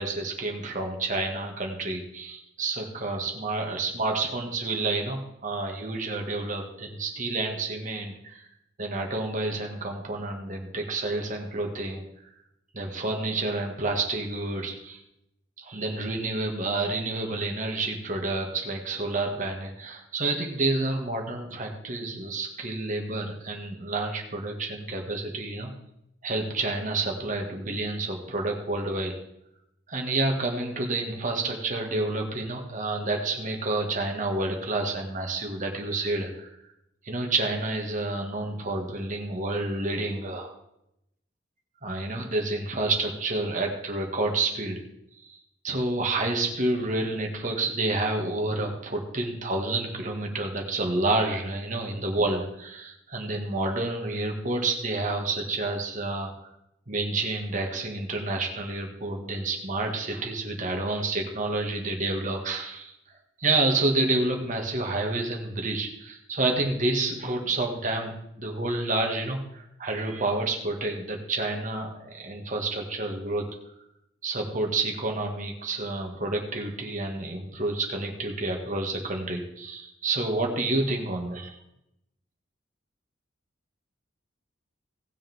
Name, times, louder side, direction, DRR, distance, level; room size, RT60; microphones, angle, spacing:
voice 1, 0.0-8.4 8.8-12.1 12.7-15.0 15.6-25.7 26.2-29.2 29.9-36.5 37.0-40.5 41.8-44.8 45.2-45.4 45.6-56.3 56.9-62.9 63.4-73.5 74.2-81.6, right 2 dB, 40° right, 2 dB, 2.0 m, -29 dB
18.5 x 7.0 x 3.6 m, 0.80 s
head